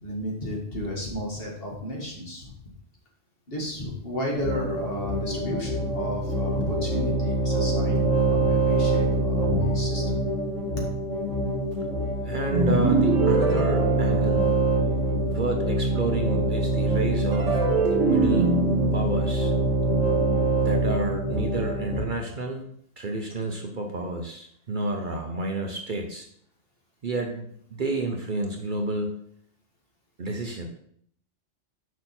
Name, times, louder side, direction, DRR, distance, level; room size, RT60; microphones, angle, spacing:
voice 1, 0.0-2.6 3.5-10.2, left 1 dB, 50° left, -2 dB, 2.0 m, -33 dB
sound 1, 4.3-22.0, right 2 dB, 80° left, 3.3 m, -25 dB
voice 2, 12.2-14.5 15.3-18.5 18.9-19.5 20.6-22.6 23.0-26.3 27.0-29.2 30.2-30.7, right 2 dB, 45° right, 3 dB, 0.9 m, -30 dB
sound 2, 12.5-14.9 17.3-20.6, right 3 dB, 90° right, 1.5 m, -25 dB
6.5 x 5.3 x 4.3 m, 0.65 s
omnidirectional pair, 1.2 m